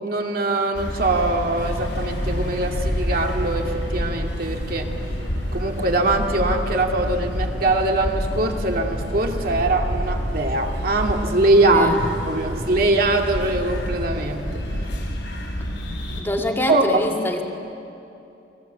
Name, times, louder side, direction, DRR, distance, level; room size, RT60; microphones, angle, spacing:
voice 1, 0.0-4.9 5.5-11.9 12.3-14.4 16.7-16.8, right 2 dB, 55° right, 2 dB, 2.3 m, -22 dB
sound 1, 0.7-16.2, equal, 75° left, 5.5 m, -28 dB
sound 2, 1.5-14.8, equal, 90° right, 6.3 m, -37 dB
voice 2, 16.2-17.4, left 1 dB, 15° left, 1 dB, 2.0 m, -24 dB
29.5 x 21.0 x 8.2 m, 2.9 s
head